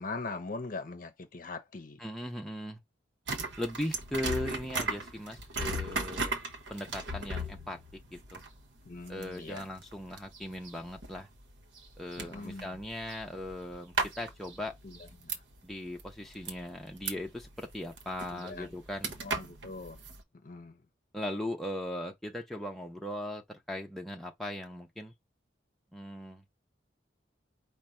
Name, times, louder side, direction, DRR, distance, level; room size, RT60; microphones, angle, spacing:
voice 1, 0.0-2.0 8.8-9.7 12.2-12.6 14.8-15.4 18.3-18.7 19.2-20.0 20.4-20.8, left 3 dB, 45° left, 0.7 m, -41 dB
voice 2, 2.0-2.8 3.6-6.3 6.7-7.8 8.1-8.4 9.1-11.3 12.0-14.7 15.6-19.2 21.1-25.1 25.9-26.4, left 1 dB, ahead, 0.7 m, -38 dB
sound 1, 3.3-15.7 16.0-20.2, right 2 dB, 75° right, 1.0 m, -37 dB
5.0 x 2.2 x 4.3 m
head